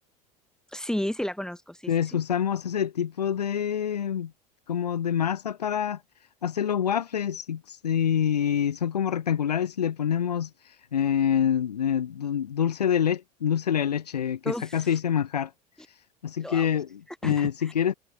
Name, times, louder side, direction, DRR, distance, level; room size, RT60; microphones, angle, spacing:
voice 1, 0.7-1.9 14.4-14.9 16.4-16.7 17.2-17.7, left 1 dB, 5° left, 2.4 m, -32 dB
voice 2, 1.9-4.3 4.7-6.0 6.4-15.5 15.9-17.9, left 8 dB, 90° left, 0.8 m, -26 dB
hypercardioid pair, 75°, 20 cm